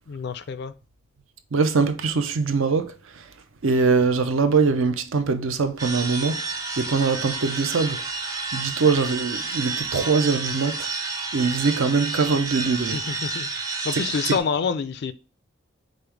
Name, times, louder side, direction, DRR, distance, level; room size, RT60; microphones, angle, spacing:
voice 1, 0.1-0.7 12.9-13.5 13.8-15.1, left 5 dB, 50° left, 0.3 m, -27 dB
voice 2, 1.5-2.9 3.6-6.4 6.8-8.0 8.5-10.9 11.3-13.0 14.3-14.4, right 4 dB, 65° right, 0.5 m, -22 dB
sound 1, 5.8-14.4, right 3 dB, 15° right, 0.4 m, -30 dB
5.1 x 2.1 x 4.5 m
head